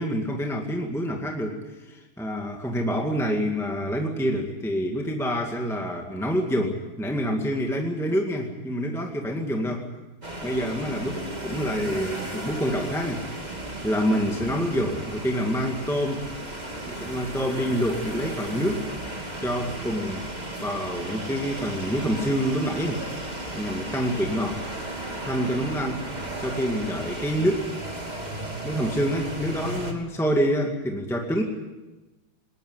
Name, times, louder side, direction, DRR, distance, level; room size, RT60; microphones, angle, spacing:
voice 1, 0.0-9.9 10.4-13.2 13.8-16.4 16.9-18.9 19.4-20.3 20.6-23.1 23.5-24.6 25.2-26.1 26.4-27.7 28.6-31.4, equal, ahead, 1 dB, 2.0 m, -27 dB
sound 1, 10.2-29.9, right 1 dB, 20° right, 2.8 m, -35 dB
21.0 x 19.0 x 9.7 m, 1.1 s
omnidirectional pair, 2.2 m